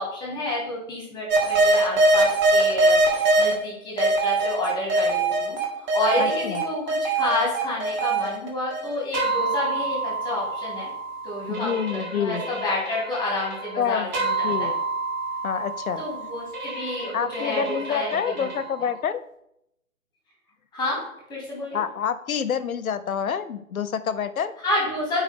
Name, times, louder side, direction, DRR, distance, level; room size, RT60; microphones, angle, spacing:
voice 1, 0.0-10.9 11.2-14.7 16.0-18.5 20.7-21.0 21.3-21.8 24.6-25.2, left 2 dB, 10° left, -3 dB, 1.9 m, -29 dB
sound 1, 1.3-3.5 4.0-18.9, right 2 dB, 30° right, 1.7 m, -24 dB
voice 2, 6.2-6.6 11.5-12.4 13.8-14.1 14.4-14.8 15.4-16.0 17.1-19.2 21.7-24.5, left 7 dB, 80° left, 12 dB, 0.8 m, -27 dB
7.9 x 4.9 x 4.4 m, 0.78 s
hypercardioid pair, 150°, 41 cm